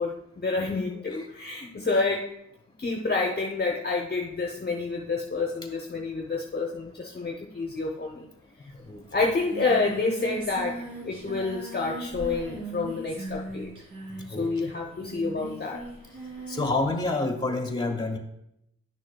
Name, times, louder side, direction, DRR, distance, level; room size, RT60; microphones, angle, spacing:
voice 1, 0.0-2.3 2.8-8.3 9.1-13.7 14.4-15.8, left 3 dB, 35° left, 1 dB, 0.8 m, -28 dB
Singing, 8.8-8.9 9.1-16.8, right 2 dB, 80° right, 2.8 m, -39 dB
voice 2, 16.5-18.2, left 2 dB, 15° left, 3 dB, 1.3 m, -27 dB
10.5 x 6.2 x 2.2 m, 0.79 s
cardioid pair, 80°, 30 cm